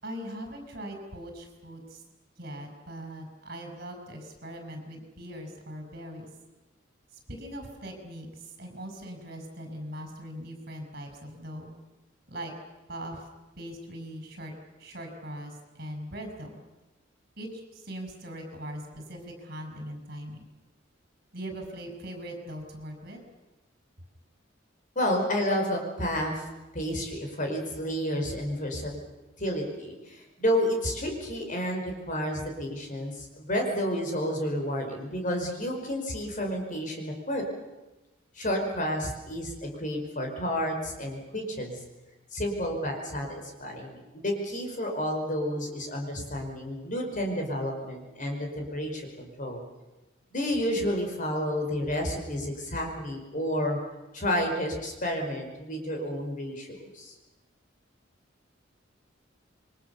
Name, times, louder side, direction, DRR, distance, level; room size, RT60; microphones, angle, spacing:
voice 1, 0.0-2.0 2.4-6.3 7.3-8.3 8.6-11.8 12.3-12.5 12.9-13.2 13.6-14.5 14.8-16.6 17.4-20.4 21.3-23.2, equal, 55° right, 4 dB, 5.8 m, -40 dB
voice 2, 24.9-26.5 26.7-28.9 29.4-37.4 38.3-41.8 42.3-49.6 50.3-53.8 54.1-57.1, equal, 40° left, 2 dB, 4.8 m, -30 dB
28.0 x 22.5 x 7.0 m, 1.1 s
head